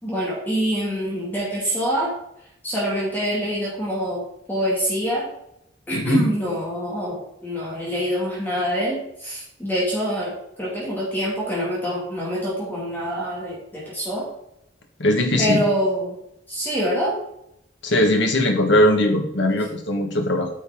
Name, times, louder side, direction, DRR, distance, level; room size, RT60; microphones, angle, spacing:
voice 1, 0.0-2.1 2.6-4.2 4.5-5.3 5.9-14.3 15.4-16.1 16.5-17.1, equal, 10° left, -6 dB, 2.3 m, -25 dB
voice 2, 5.9-6.3 15.0-15.6 17.8-20.5, left 1 dB, 80° left, 3 dB, 1.5 m, -20 dB
9.3 x 5.5 x 3.8 m, 0.78 s
head